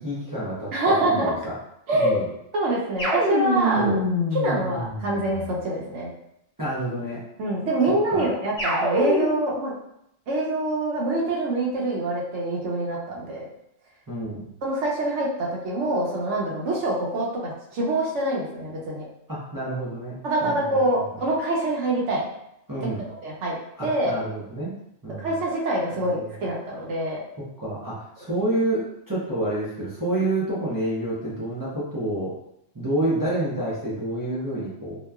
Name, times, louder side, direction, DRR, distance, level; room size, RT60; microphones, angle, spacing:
voice 1, 0.0-1.5 1.9-2.3 3.8-4.0 6.6-7.2 8.1-8.3 14.1-14.5 19.3-20.8 22.7-23.1 23.8-24.7 25.0-25.4 25.9-26.4 27.4-32.3 32.7-35.0, right 1 dB, 30° right, -9 dB, 0.4 m, -29 dB
voice 2, 0.7-1.3 1.9-2.2 2.5-3.9 4.3-6.1 7.4-9.7 10.3-13.5 14.6-19.1 20.2-22.2 23.1-23.6 23.8-24.2 25.2-27.2, right 1 dB, 70° right, -3 dB, 0.9 m, -25 dB
sound 1, 3.0-5.5 8.6-9.6, equal, 25° left, 1.1 m, -25 dB
2.9 x 2.2 x 2.3 m, 0.78 s
omnidirectional pair, 1.3 m